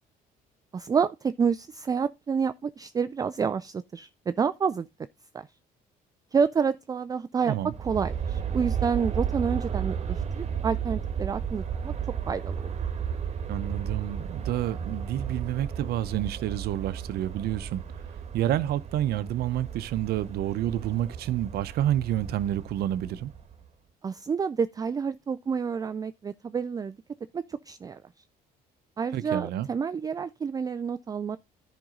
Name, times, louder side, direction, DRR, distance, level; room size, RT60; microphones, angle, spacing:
voice 1, 0.7-4.9 5.3-5.5 6.3-7.5 7.8-11.9 12.3-12.8 24.0-27.0 27.3-28.0 29.0-31.4, right 6 dB, 20° right, 0.3 m, -29 dB
Aircraft, 7.6-23.6, right 7 dB, 40° right, 1.3 m, -34 dB
voice 2, 13.5-17.8 18.3-23.3 29.1-29.7, right 12 dB, 70° right, 0.7 m, -29 dB
10.5 x 5.3 x 3.8 m
cardioid pair, 110°, 17 cm